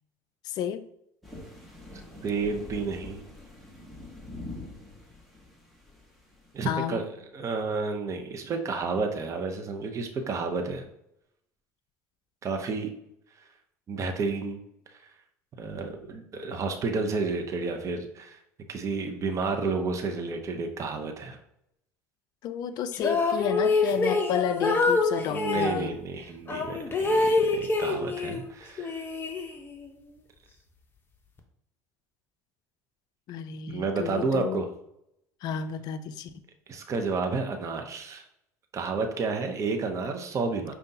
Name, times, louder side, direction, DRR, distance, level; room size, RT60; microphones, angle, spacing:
voice 1, 0.4-0.8 6.6-7.0 22.4-25.9 33.3-34.6 35.4-36.3, left 9 dB, 50° left, 12 dB, 0.3 m, -31 dB
sound 1, 1.2-6.7, left 2 dB, ahead, 1.2 m, -44 dB
voice 2, 2.2-3.2 6.5-7.1 7.3-10.9 12.4-12.9 13.9-14.6 14.9-15.0 15.6-18.4 18.7-21.4 25.3-28.9 33.7-34.7 36.7-38.2 38.7-40.7, right 4 dB, 35° right, 5 dB, 0.7 m, -31 dB
sound 2, 22.9-25.8 26.5-28.4 28.8-29.9, left 3 dB, 25° left, 0.8 m, -26 dB
5.1 x 2.3 x 2.7 m, 0.77 s
hypercardioid pair, 80°, 9 cm